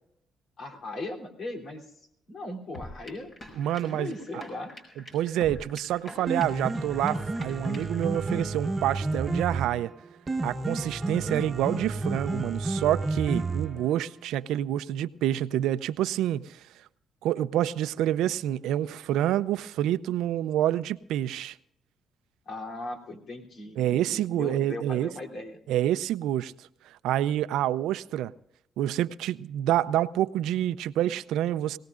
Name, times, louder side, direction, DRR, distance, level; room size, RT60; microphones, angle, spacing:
voice 1, 0.6-2.0 2.3-3.3 3.8-4.8 22.5-25.6, left 2 dB, 60° left, 2 dB, 3.3 m, -38 dB
sound 1, 2.7-8.1, left 1 dB, 40° left, 5.8 m, -45 dB
voice 2, 3.6-4.1 5.1-9.9 10.4-16.6 17.2-21.6 23.8-25.1 25.7-26.7 27.0-28.3 28.8-31.8, right 12 dB, 90° right, 15 dB, 0.5 m, -27 dB
Piano, 6.1-14.1, right 2 dB, 30° right, 1.2 m, -31 dB
23.0 x 18.0 x 2.5 m, 0.75 s
cardioid pair, 90°, 0 cm